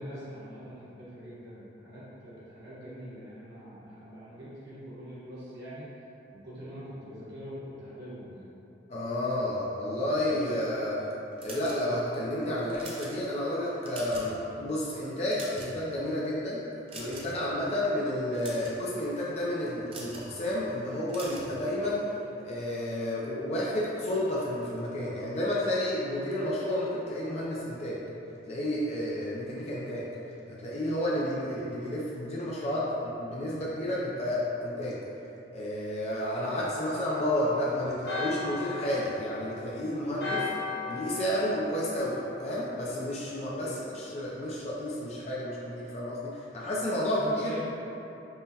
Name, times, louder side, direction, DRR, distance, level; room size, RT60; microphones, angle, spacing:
voice 1, 0.0-5.9 6.3-8.5 40.2-40.6 43.6-43.9 46.9-47.9, equal, 60° right, -11 dB, 1.2 m, -43 dB
voice 2, 8.9-11.0 11.4-16.6 16.9-22.0 22.4-28.0 28.5-30.0 30.6-35.0 35.5-40.4 40.9-43.7 44.0-47.6, left 1 dB, 35° left, -6 dB, 0.4 m, -31 dB
sound 1, 11.4-12.1 12.6-13.1 13.7-14.4 14.7-14.8 15.2-15.9 16.9-17.4 18.2-18.8 19.9-20.3 21.1-21.5, right 2 dB, 30° right, 0.5 m, -43 dB
Church bell, 37.1-42.8, left 3 dB, 60° left, 0.7 m, -38 dB
5.4 x 2.1 x 2.8 m, 2.9 s
head